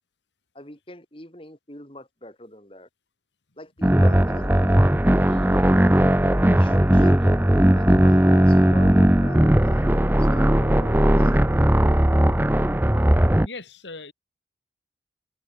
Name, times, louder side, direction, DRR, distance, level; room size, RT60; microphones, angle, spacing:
voice 1, 0.5-2.9 3.6-4.8 5.4-5.8 6.5-7.4 7.7-11.8, left 1 dB, 30° left, 6.5 m, -42 dB
sound 1, 3.8-13.5, right 1 dB, 10° right, 0.6 m, -18 dB
voice 2, 13.4-14.1, left 3 dB, 85° left, 2.7 m, -39 dB
head